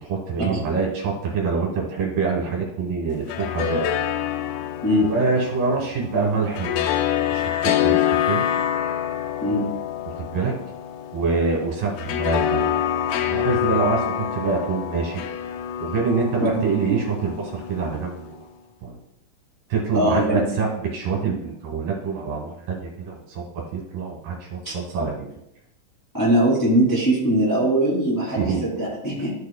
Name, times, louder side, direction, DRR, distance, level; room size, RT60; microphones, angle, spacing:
voice 1, 0.0-3.9 5.0-8.4 10.1-10.5 11.1-15.2 15.8-18.5 18.8-19.0 19.7-25.3 28.4-28.6, right 4 dB, 70° right, -1 dB, 2.7 m, -26 dB
sound 1, 3.1-18.3, left 10 dB, 85° left, 2.3 m, -26 dB
voice 2, 19.9-20.4 24.6-24.7 26.1-29.3, right 1 dB, 5° left, -7 dB, 2.1 m, -21 dB
13.0 x 4.7 x 2.3 m, 0.78 s
omnidirectional pair, 4.2 m